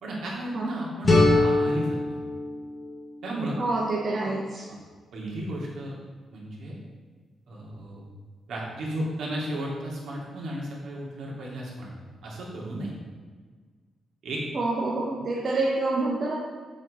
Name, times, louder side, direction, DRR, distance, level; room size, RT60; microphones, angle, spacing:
voice 1, 0.0-2.0 3.2-3.6 5.1-5.9 6.3-6.8 7.5-8.0 8.5-11.9 12.2-12.9 14.2-14.4, right 1 dB, 70° right, -3 dB, 2.4 m, -34 dB
sound 1, 1.0-3.9, left 2 dB, 25° left, 1.4 m, -24 dB
voice 2, 3.6-4.7 14.5-16.4, right 2 dB, 40° right, -4 dB, 1.1 m, -27 dB
7.5 x 7.4 x 4.3 m, 1.5 s
wide cardioid pair, 160°, 0 cm